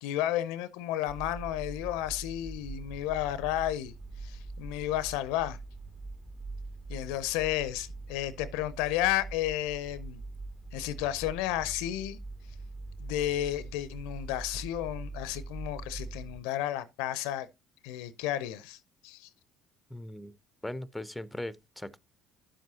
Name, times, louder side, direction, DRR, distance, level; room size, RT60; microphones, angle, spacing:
voice 1, 0.0-3.9 4.2-5.6 6.9-10.2 10.7-12.2 13.0-17.5 17.8-18.8 19.0-19.3, left 13 dB, 70° left, 0.6 m, -32 dB
sound 1, 1.1-16.4, right 3 dB, 35° right, 1.6 m, -43 dB
voice 2, 19.9-20.3 20.6-22.0, left 1 dB, 5° left, 0.7 m, -39 dB
10.0 x 7.5 x 2.8 m
hypercardioid pair, 60°, 0 cm